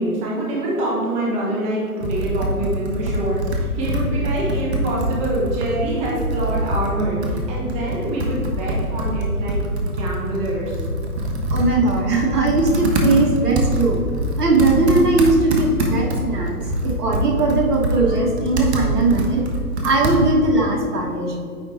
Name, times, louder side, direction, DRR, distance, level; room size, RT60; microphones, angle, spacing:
voice 1, 0.0-10.7, right 1 dB, 15° right, -4 dB, 1.1 m, -25 dB
Computer keyboard, 2.0-20.5, equal, 45° right, 1.3 m, -24 dB
voice 2, 11.5-14.0 14.4-16.6 16.8-19.5 19.8-21.4, right 3 dB, 80° right, 0 dB, 1.5 m, -19 dB
9.5 x 3.9 x 4.2 m, 2.3 s
figure-of-eight pair, 140°, 46 cm